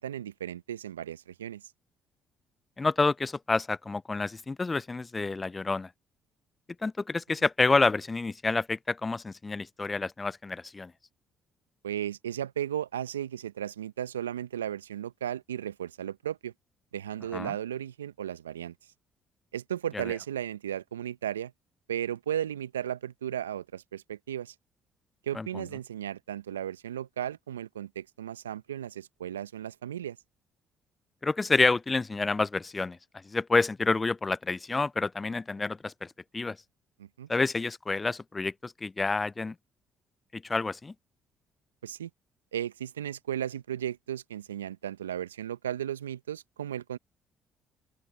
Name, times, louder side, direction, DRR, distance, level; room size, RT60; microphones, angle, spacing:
voice 1, 0.0-1.6 11.8-16.5 16.9-18.7 19.5-21.5 21.9-24.5 25.3-30.2 37.0-37.3 41.8-42.1 42.5-47.0, right 10 dB, 85° right, 1.0 m, -35 dB
voice 2, 2.8-5.9 6.8-10.9 17.3-17.5 19.9-20.0 25.4-25.5 31.2-33.0 33.3-36.1 36.3-36.6 37.3-39.5 40.3-40.9, left 3 dB, 25° left, 0.3 m, -28 dB
open air
hypercardioid pair, 50°, 0 cm